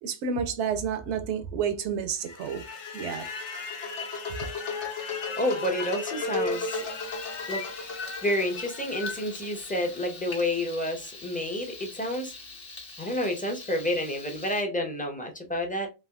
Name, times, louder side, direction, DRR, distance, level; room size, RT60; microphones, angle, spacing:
voice 1, 0.0-2.6 2.9-3.3, right 6 dB, 80° right, 0.9 m, -30 dB
sound 1, 2.2-10.3, left 3 dB, 80° left, 1.1 m, -35 dB
voice 2, 5.4-6.8 7.5-7.7 8.2-12.3 13.0-15.9, left 1 dB, 10° left, 0.5 m, -29 dB
Frying (food), 6.5-14.6, left 3 dB, 55° left, 1.1 m, -44 dB
3.4 x 2.4 x 2.3 m
omnidirectional pair, 1.2 m